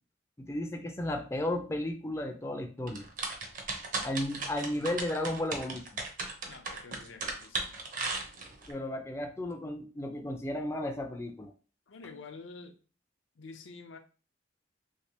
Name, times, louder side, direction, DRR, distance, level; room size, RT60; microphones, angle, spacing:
voice 1, 0.4-3.1 4.0-6.0 8.7-11.5, left 1 dB, 15° left, 0.4 m, -34 dB
sound 1, 2.9-8.7, right 3 dB, 45° right, 0.7 m, -36 dB
voice 2, 4.7-5.0 6.4-7.8 11.9-12.8 13.4-14.0, left 4 dB, 80° left, 0.5 m, -48 dB
3.2 x 3.2 x 2.8 m
head